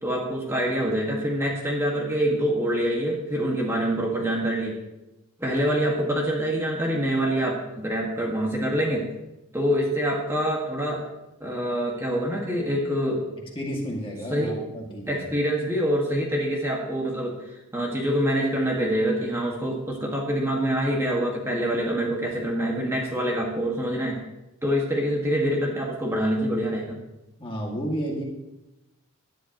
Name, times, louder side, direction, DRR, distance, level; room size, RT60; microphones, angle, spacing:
voice 1, 0.0-4.7 5.4-9.1 9.5-11.0 11.4-13.3 14.3-14.6 15.1-17.4 17.7-24.2 24.6-27.0, equal, 10° right, -1 dB, 1.7 m, -25 dB
voice 2, 13.5-15.2 27.4-28.2, equal, 25° left, -1 dB, 2.1 m, -31 dB
18.0 x 11.0 x 3.0 m, 0.95 s
head